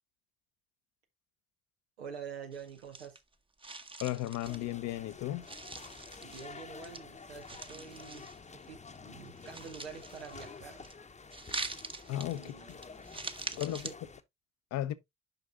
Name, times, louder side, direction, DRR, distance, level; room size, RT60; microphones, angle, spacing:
voice 1, 2.0-3.2 6.2-8.3 8.7-10.9 12.3-12.8 13.4-13.9, right 6 dB, 85° right, 0.9 m, -47 dB
sound 1, 2.5-3.3 3.6-5.1 5.4-7.0 7.4-8.6 8.9-10.9 11.3-13.9, right 3 dB, 15° right, 0.9 m, -44 dB
voice 2, 4.0-5.5 12.1-12.5 13.6-13.9 14.7-14.9, left 14 dB, 55° left, 0.7 m, -35 dB
sound 2, 4.4-14.2, left 4 dB, 20° left, 0.9 m, -50 dB
9.1 x 5.7 x 2.5 m
figure-of-eight pair, 45°, 32 cm